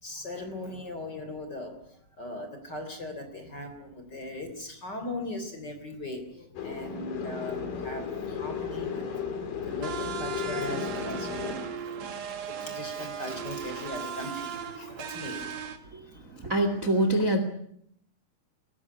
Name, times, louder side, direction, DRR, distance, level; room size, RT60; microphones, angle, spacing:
voice 1, 0.0-9.1 9.6-11.7 11.9-12.1 12.5-16.2, left 1 dB, 25° left, 7 dB, 3.5 m, -39 dB
sound 1, 6.6-11.6, left 7 dB, 55° left, 4.3 m, -34 dB
sound 2, 9.8-15.8, right 7 dB, 50° right, 2.7 m, -37 dB
voice 2, 16.4-17.4, right 1 dB, 25° right, 8 dB, 2.1 m, -24 dB
22.0 x 19.0 x 9.6 m, 0.68 s
omnidirectional pair, 4.7 m